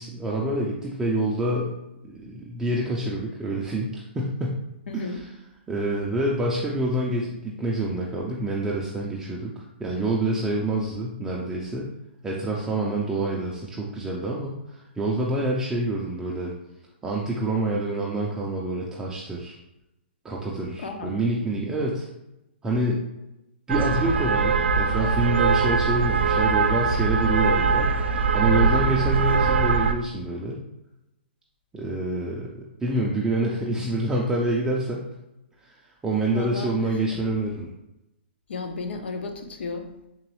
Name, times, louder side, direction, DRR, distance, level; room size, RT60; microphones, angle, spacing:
voice 1, 0.0-1.7 2.0-4.6 4.9-5.2 5.7-11.9 12.2-16.5 17.0-19.6 20.2-22.1 22.6-23.0 23.7-27.9 28.3-30.6 31.7-35.0 35.6-35.8 36.0-37.7, right 2 dB, 10° right, -4 dB, 0.3 m, -27 dB
voice 2, 4.9-5.2 20.8-21.1 36.3-37.0 38.5-40.1, left 3 dB, 75° left, 6 dB, 0.6 m, -34 dB
sound 1, 23.7-29.9, right 4 dB, 85° right, 0.4 m, -22 dB
3.9 x 3.0 x 3.1 m, 0.89 s
hypercardioid pair, 155°, 6 cm